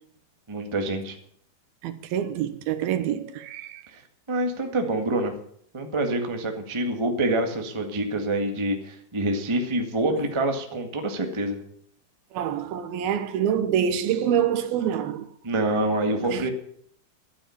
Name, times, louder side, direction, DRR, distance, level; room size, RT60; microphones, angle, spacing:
voice 1, 0.5-1.2 3.9-4.0 4.3-5.3 5.7-11.6 15.4-16.5, right 1 dB, 30° right, 0.5 m, -26 dB
voice 2, 1.8-3.8 12.3-15.3 16.3-16.5, right 9 dB, 85° right, 3.0 m, -26 dB
12.5 x 9.9 x 8.7 m
omnidirectional pair, 4.2 m